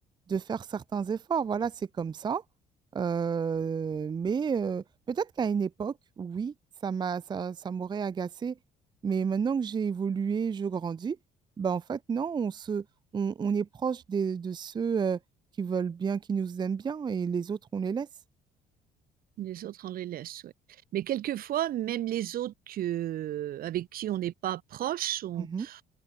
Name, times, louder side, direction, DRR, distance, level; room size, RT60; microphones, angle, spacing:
voice 1, 0.3-2.4 2.9-6.5 6.8-8.6 9.0-11.2 11.6-12.8 13.1-15.2 15.6-18.1 25.4-25.7, right 6 dB, 25° right, 0.5 m, -30 dB
voice 2, 19.4-20.5 20.9-25.8, right 12 dB, 60° right, 1.0 m, -33 dB
open air
cardioid pair, 110°, 17 cm